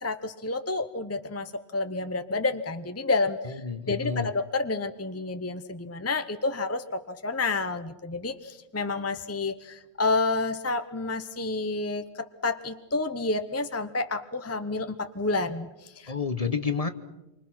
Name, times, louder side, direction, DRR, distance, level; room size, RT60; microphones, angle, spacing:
voice 1, 0.0-3.6 3.9-12.0 12.4-16.1, left 3 dB, 15° left, 9 dB, 0.8 m, -29 dB
voice 2, 3.4-4.3 16.1-16.9, left 5 dB, 35° left, 10 dB, 1.1 m, -29 dB
28.5 x 24.5 x 6.0 m, 0.98 s
omnidirectional pair, 1.2 m